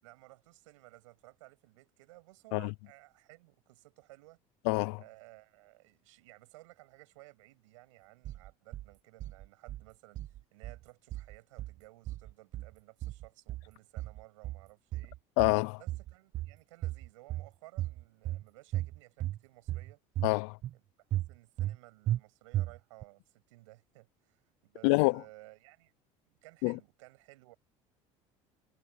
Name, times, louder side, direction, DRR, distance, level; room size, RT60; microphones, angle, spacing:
voice 1, 0.0-4.4 5.0-10.2 10.5-15.2 15.8-20.0 20.7-20.8 21.1-25.9 26.3-27.6, right 21 dB, 90° right, 6.9 m, -57 dB
voice 2, 4.7-5.0 15.4-15.8 20.2-20.6 24.8-25.2 26.6-26.8, left 28 dB, 80° left, 0.5 m, -26 dB
sound 1, 8.2-8.9 9.2-9.8 10.2-10.8 11.1-11.8 12.1-12.7 13.0-13.7 14.0-14.7 14.9-15.6 15.9-16.6 16.8-17.5 17.8-18.4 18.7-19.4 19.7-20.3 20.6-20.7 21.1-21.8 22.1-22.2 22.5-23.0, right 14 dB, 55° right, 0.9 m, -35 dB
supercardioid pair, 90°, 16 cm